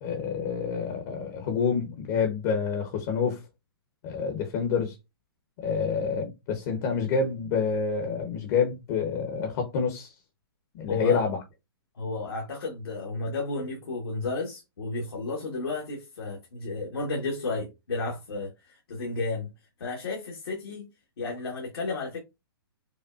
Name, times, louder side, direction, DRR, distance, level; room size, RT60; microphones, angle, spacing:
voice 1, 0.0-3.4 4.0-4.9 5.6-10.1 10.7-11.4, left 6 dB, 40° left, 0.9 m, -28 dB
voice 2, 10.9-11.2 11.9-19.5 19.8-20.9 21.2-22.2, left 3 dB, 75° left, 1.4 m, -32 dB
5.2 x 2.2 x 2.5 m
hypercardioid pair, 135°, 13 cm